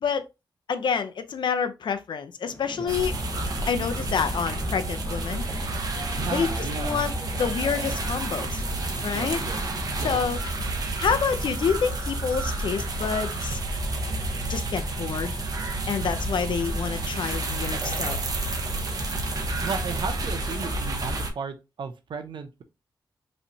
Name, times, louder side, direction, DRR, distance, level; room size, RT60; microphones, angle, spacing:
voice 1, 0.7-3.1 3.7-5.4 6.3-8.6 9.0-9.4 10.0-10.4 11.0-13.6 14.5-15.4 15.9-18.2, left 6 dB, 75° left, 0.6 m, -28 dB
sound 1, 2.4-10.2, left 2 dB, 25° left, 1.1 m, -44 dB
sound 2, 2.9-21.3, right 2 dB, 50° right, 1.0 m, -30 dB
voice 2, 6.1-7.0 9.1-9.6 10.0-10.2 19.6-22.6, right 5 dB, 80° right, 0.7 m, -34 dB
5.4 x 3.2 x 2.7 m
wide cardioid pair, 135°, 8 cm